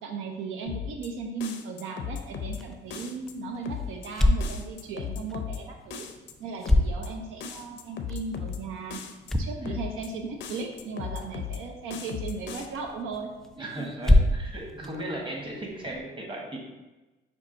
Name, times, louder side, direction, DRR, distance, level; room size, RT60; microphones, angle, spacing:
voice 1, 0.0-6.1 6.4-9.0 9.4-13.3 13.6-13.9, right 4 dB, 90° right, 3 dB, 0.5 m, -37 dB
sound 1, 0.7-1.1 1.4-2.6 2.9-3.3 3.7-4.1 4.4-5.6 5.9-6.3 6.7-7.1 7.4-8.6 8.9-9.3 9.7-10.1 10.4-11.6 11.9-12.7, left 8 dB, 65° left, 0.5 m, -36 dB
sound 2, 2.4-16.0, left 1 dB, ahead, 0.3 m, -30 dB
voice 2, 13.6-16.6, right 1 dB, 25° right, -1 dB, 1.1 m, -36 dB
5.9 x 2.3 x 3.8 m, 1.1 s
cardioid pair, 90°, 20 cm